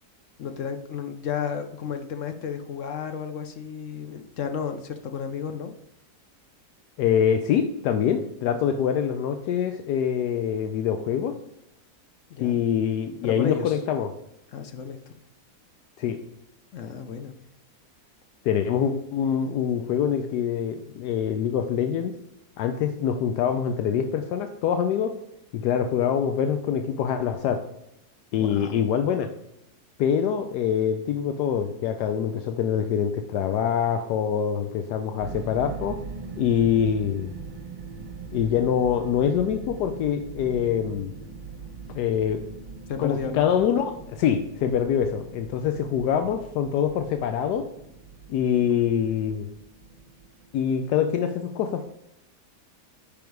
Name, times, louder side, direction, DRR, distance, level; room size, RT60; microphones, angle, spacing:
voice 1, 0.4-5.7 12.3-12.6 13.2-13.8 14.5-15.0 16.7-17.3 28.4-28.8 42.9-43.5, left 7 dB, 60° left, 8 dB, 0.8 m, -32 dB
voice 2, 7.0-11.3 12.4-14.1 16.0-16.2 18.4-22.1 22.6-25.1 25.5-27.6 28.3-29.3 30.0-36.0 36.4-37.3 38.3-41.1 41.9-42.4 43.0-47.6 48.3-49.5 50.5-51.8, left 8 dB, 80° left, 7 dB, 1.2 m, -25 dB
sound 1, 35.2-51.1, right 4 dB, 35° right, 0.8 m, -41 dB
9.9 x 3.6 x 4.6 m, 0.80 s
omnidirectional pair, 1.8 m